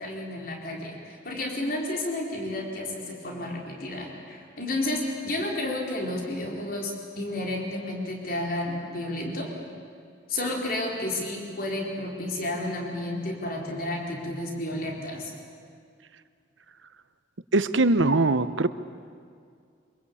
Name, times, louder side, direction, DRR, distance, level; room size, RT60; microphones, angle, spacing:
voice 1, 0.0-9.5 10.3-15.3, left 1 dB, 50° left, 0 dB, 4.1 m, -31 dB
voice 2, 17.5-18.7, right 2 dB, 90° right, 13 dB, 1.0 m, -21 dB
25.0 x 22.5 x 8.6 m, 2.2 s
head